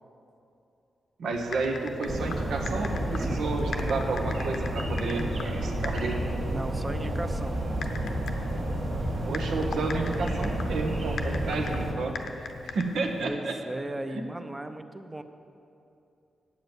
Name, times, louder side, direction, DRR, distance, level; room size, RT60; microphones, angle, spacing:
voice 1, 1.2-6.2 9.3-13.6 14.1-14.2, right 3 dB, 85° right, 3 dB, 1.2 m, -31 dB
Typing, 1.3-13.2, left 5 dB, 80° left, 0.8 m, -41 dB
sound 1, 2.0-11.9, right 1 dB, 60° right, 1.7 m, -30 dB
voice 2, 6.5-7.7 13.2-15.2, right 1 dB, 15° right, 9 dB, 0.6 m, -36 dB
8.9 x 7.4 x 7.8 m, 2.7 s
wide cardioid pair, 145°, 0 cm